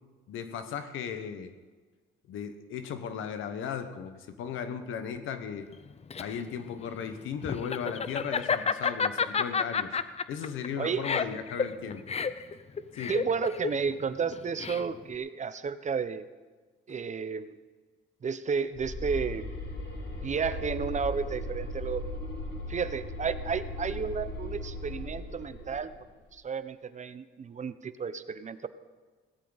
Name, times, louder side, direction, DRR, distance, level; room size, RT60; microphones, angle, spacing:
voice 1, 0.3-1.5 2.3-5.7 6.2-10.0 10.3-12.1 12.9-13.1, left 7 dB, 85° left, 9 dB, 1.3 m, -36 dB
Laughter, 5.7-15.1, left 5 dB, 30° left, 0.7 m, -31 dB
voice 2, 10.8-11.1 13.1-16.3 16.9-17.6 18.2-19.4 20.2-22.0 22.7-25.9 26.3-28.7, right 6 dB, 35° right, 13 dB, 0.8 m, -32 dB
sound 1, 18.7-26.0, left 1 dB, 55° left, 3.5 m, -38 dB
17.5 x 13.5 x 4.1 m, 1.4 s
cardioid pair, 90°, 20 cm